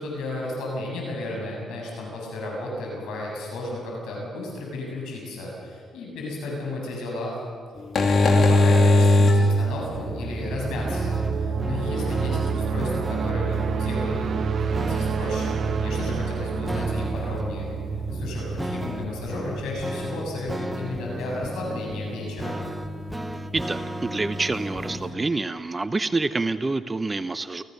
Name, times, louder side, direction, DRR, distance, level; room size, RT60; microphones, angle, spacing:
voice 1, 0.0-7.4 8.0-14.4 14.8-17.7 18.1-22.7, left 2 dB, 85° left, -1 dB, 7.5 m, -33 dB
sound 1, 7.8-25.1, left 2 dB, 50° left, 2.9 m, -27 dB
sound 2, 9.7-20.4, right 6 dB, 55° right, 1.2 m, -29 dB
sound 3, 9.9-25.3, right 1 dB, 10° right, 1.1 m, -36 dB
voice 2, 23.5-27.6, right 3 dB, 25° right, 12 dB, 0.8 m, -27 dB
29.0 x 16.0 x 6.8 m, 2.1 s
cardioid pair, 90°, 0 cm